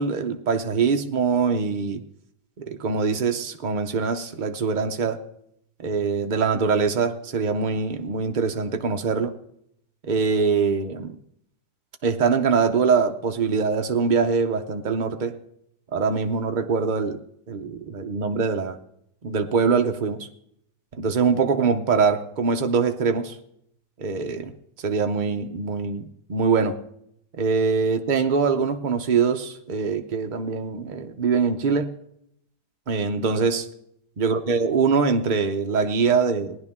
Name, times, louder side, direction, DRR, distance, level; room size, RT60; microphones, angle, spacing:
voice 1, 0.0-2.0 2.7-5.2 5.8-9.3 10.0-11.1 12.0-15.3 15.9-17.2 17.5-18.8 19.2-20.3 21.0-23.4 24.0-24.5 24.8-26.7 27.4-31.9 32.9-33.7 34.2-36.6, right 5 dB, 75° right, 5 dB, 0.4 m, -23 dB
18.5 x 10.5 x 3.6 m, 0.73 s
omnidirectional pair, 1.9 m